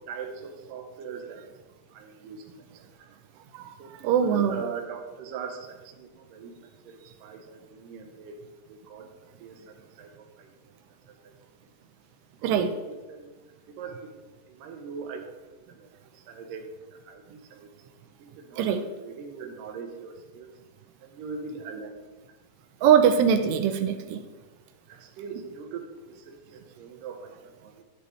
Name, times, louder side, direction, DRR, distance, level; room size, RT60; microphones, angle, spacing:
voice 1, 0.1-1.4 1.9-2.9 3.8-8.4 8.7-9.1 9.4-10.8 11.2-11.3 12.4-13.3 13.7-17.7 18.2-20.5 21.0-21.9 22.3-22.4 24.9-27.8, right 5 dB, 70° right, 3 dB, 2.3 m, -41 dB
voice 2, 4.0-4.7 12.4-12.8 18.6-18.8 22.8-24.2, right 8 dB, 90° right, 8 dB, 2.8 m, -22 dB
10.0 x 9.7 x 3.2 m, 1.2 s
omnidirectional pair, 4.9 m